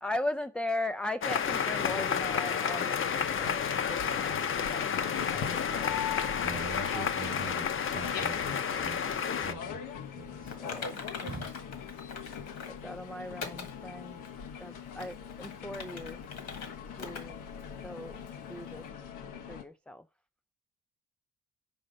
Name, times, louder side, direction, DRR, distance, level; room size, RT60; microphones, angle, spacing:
voice 1, 0.0-6.0 10.6-11.1 12.8-14.2 14.6-16.2 17.0-17.4 17.8-18.9 19.5-20.0, left 1 dB, 5° left, 0.3 m, -38 dB
sound 1, 1.2-9.5, left 7 dB, 45° left, 0.7 m, -31 dB
sound 2, 1.4-19.6, left 8 dB, 90° left, 1.0 m, -41 dB
voice 2, 6.4-9.8 10.1-10.6 11.2-11.5, right 4 dB, 30° right, 1.1 m, -43 dB
Typing, 10.5-12.8 13.4-13.7 14.2-14.3 14.9-16.7 17.0-17.2 17.6-17.7 18.3-18.4, left 5 dB, 65° left, 1.7 m, -42 dB
5.5 x 5.0 x 6.5 m
cardioid pair, 90°, 30 cm